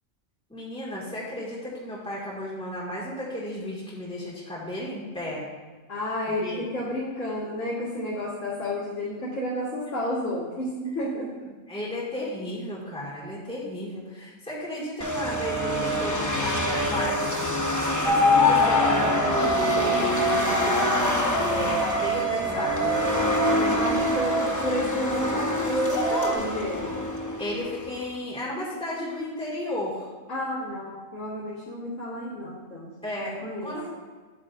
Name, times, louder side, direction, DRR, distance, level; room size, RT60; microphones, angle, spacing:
voice 1, 0.5-5.4 6.3-6.7 11.7-17.5 17.8-23.2 27.4-30.1 33.0-33.9, left 1 dB, 5° left, -6 dB, 1.9 m, -34 dB
voice 2, 5.9-11.3 23.8-27.0 30.3-32.9 33.2-33.7, equal, 60° left, -9 dB, 2.2 m, -31 dB
sound 1, 15.0-28.0, left 1 dB, 25° left, 0.3 m, -27 dB
sound 2, 18.0-24.7 25.6-26.4, equal, 60° right, 3.1 m, -25 dB
9.9 x 8.7 x 2.6 m, 1.4 s
omnidirectional pair, 1.5 m